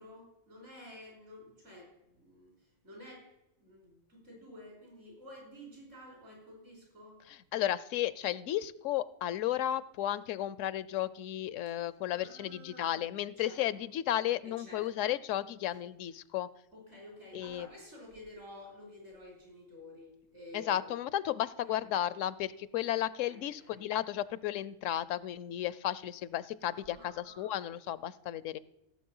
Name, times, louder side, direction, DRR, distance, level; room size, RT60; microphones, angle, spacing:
voice 1, 0.0-2.5 2.8-3.3 3.6-7.2 12.1-13.1 13.4-13.6 14.6-15.1 16.7-20.8 21.6-21.9 23.2-23.9 26.7-27.6, left 1 dB, 75° right, -1 dB, 5.3 m, -51 dB
voice 2, 7.3-16.5 17.3-17.7 20.5-28.6, left 12 dB, 80° left, 18 dB, 0.9 m, -34 dB
16.5 x 7.3 x 5.5 m, 0.94 s
omnidirectional pair, 1.3 m